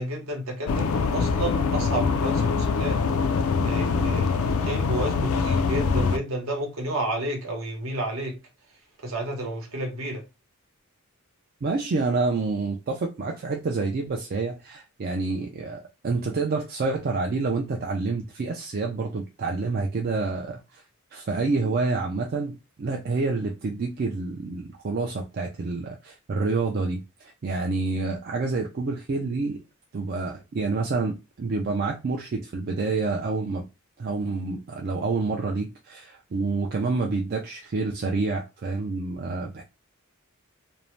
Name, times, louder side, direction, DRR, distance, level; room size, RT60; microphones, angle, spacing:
voice 1, 0.0-3.0 3.6-8.3 9.0-10.2, right 1 dB, 65° right, 0.9 m, -31 dB
sound 1, 0.7-6.2, left 5 dB, 70° left, 0.3 m, -24 dB
voice 2, 11.6-20.8 21.1-29.6 29.9-33.6 34.0-39.6, right 3 dB, 45° right, 0.4 m, -28 dB
2.6 x 2.0 x 3.0 m
head